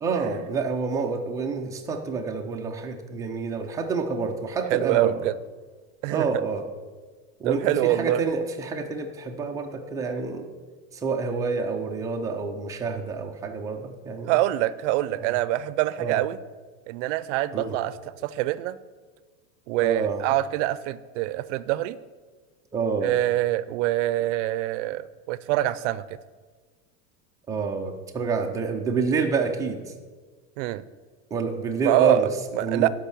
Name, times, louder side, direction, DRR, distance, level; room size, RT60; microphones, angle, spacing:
voice 1, 0.0-5.2 6.1-6.7 7.4-10.5 10.9-14.4 15.2-15.3 16.0-16.2 17.5-17.8 19.8-20.3 22.7-23.1 27.5-29.8 31.3-32.3 32.6-32.9, right 4 dB, 10° right, 2 dB, 0.3 m, -28 dB
voice 2, 4.7-5.3 6.0-6.3 7.4-8.3 14.3-16.4 16.9-17.9 18.2-18.8 19.7-22.0 23.0-25.0 25.3-26.0 30.6-30.8 31.8-32.9, right 15 dB, 55° right, 17 dB, 0.5 m, -24 dB
12.0 x 5.3 x 6.9 m, 1.4 s
supercardioid pair, 160°, 43 cm